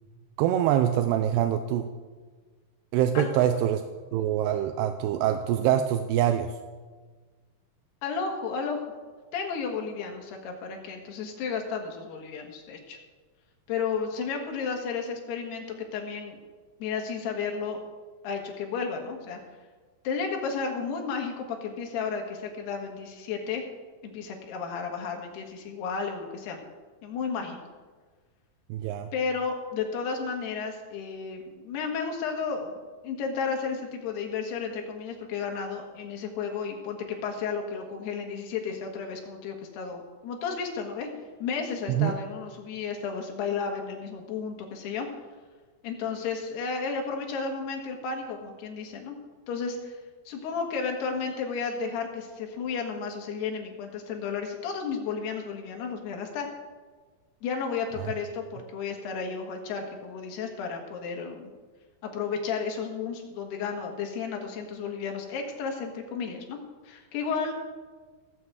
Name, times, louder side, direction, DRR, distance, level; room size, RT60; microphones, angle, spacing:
voice 1, 0.4-1.9 2.9-3.8 4.1-6.5 28.7-29.1 41.9-42.1 58.0-58.1, right 11 dB, 90° right, 7 dB, 2.7 m, -24 dB
voice 2, 8.0-8.9 9.3-13.0 13.7-15.6 15.9-16.4 16.8-17.8 18.2-19.4 20.1-23.6 24.0-26.6 27.0-27.6 29.1-32.8 33.0-41.1 41.4-45.1 45.8-49.2 49.5-50.0 50.3-56.5 57.4-61.5 62.1-66.6 66.9-67.5, left 5 dB, 80° left, 2 dB, 3.6 m, -33 dB
17.0 x 6.1 x 7.9 m, 1.4 s
omnidirectional pair, 4.6 m